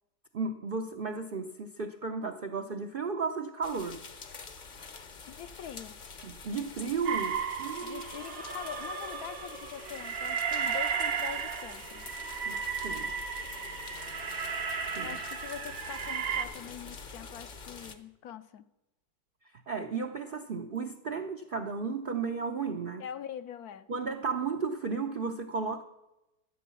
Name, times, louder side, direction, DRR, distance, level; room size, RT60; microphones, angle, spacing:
voice 1, 0.3-4.0 6.2-8.1 12.4-12.6 12.8-13.1 14.9-15.2 19.7-23.0 23.9-25.8, right 4 dB, 60° right, 4 dB, 0.5 m, -34 dB
sound 1, 3.6-18.0, left 4 dB, 40° left, 0.8 m, -46 dB
voice 2, 5.3-6.0 7.8-12.2 15.0-18.6 23.0-23.9, left 9 dB, 65° left, 12 dB, 1.0 m, -43 dB
sound 2, 7.0-16.5, right 6 dB, 90° right, 1.9 m, -34 dB
13.0 x 8.2 x 6.9 m, 0.96 s
omnidirectional pair, 2.0 m